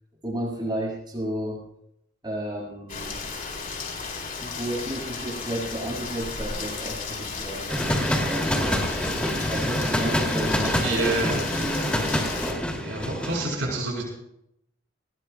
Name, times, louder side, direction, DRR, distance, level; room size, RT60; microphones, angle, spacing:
voice 1, 0.2-1.6 2.2-3.2 4.4-8.9 9.5-12.7, right 1 dB, 25° right, -1 dB, 7.3 m, -33 dB
Rain, 2.9-12.5, left 4 dB, 45° left, 4.0 m, -34 dB
sound 1, 7.7-13.5, equal, 5° left, 2.9 m, -26 dB
voice 2, 10.8-11.4 12.8-14.0, right 2 dB, 75° right, -2 dB, 7.3 m, -28 dB
23.0 x 21.0 x 2.4 m, 0.78 s
head